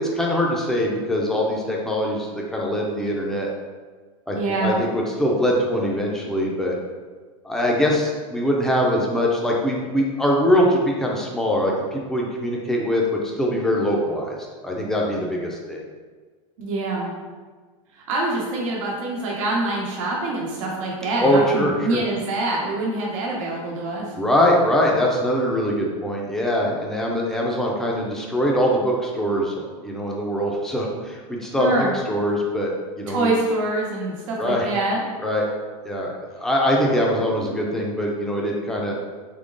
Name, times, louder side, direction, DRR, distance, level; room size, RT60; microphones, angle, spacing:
voice 1, 0.0-3.5 4.3-6.8 7.4-14.4 14.6-15.8 21.2-22.0 24.1-33.3 34.4-34.7 35.2-35.4 35.8-38.9, equal, 5° left, -2 dB, 0.6 m, -22 dB
voice 2, 4.3-4.8 16.6-17.1 17.9-24.1 31.6-31.9 33.1-35.0, right 2 dB, 70° right, -3 dB, 1.1 m, -25 dB
3.7 x 3.0 x 3.8 m, 1.4 s
supercardioid pair, 145°, 17 cm